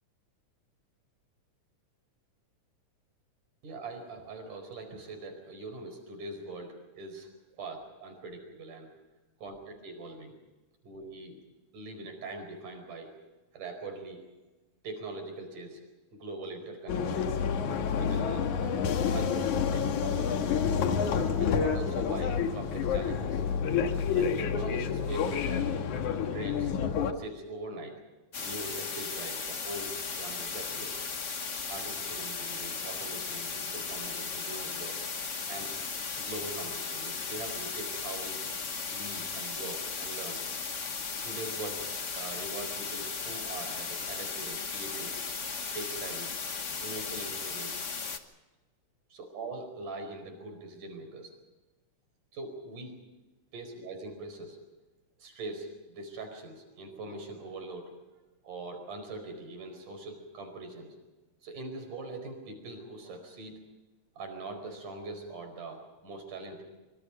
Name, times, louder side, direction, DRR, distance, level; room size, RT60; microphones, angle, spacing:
voice 1, 3.6-8.9 9.4-10.4 10.8-11.4 11.7-13.1 13.5-14.2 14.8-15.8 16.1-17.3 18.0-18.5 19.1-20.6 21.4-23.4 24.1-25.9 26.3-26.7 27.1-28.0 28.4-31.0 31.7-35.0 35.5-35.7 36.2-38.4 38.9-40.4 41.2-41.9 42.2-45.2 45.7-46.4 46.8-47.8 49.1-51.3 52.3-53.0 53.5-54.6 55.2-57.9 58.4-61.0 61.4-63.6 64.2-66.6, right 2 dB, 80° right, 5 dB, 6.3 m, -42 dB
sound 1, 16.9-27.1, left 7 dB, 70° left, 2.8 m, -29 dB
sound 2, 28.3-48.2, left 5 dB, 45° left, 0.9 m, -36 dB
26.0 x 24.0 x 5.2 m, 1.2 s
omnidirectional pair, 3.6 m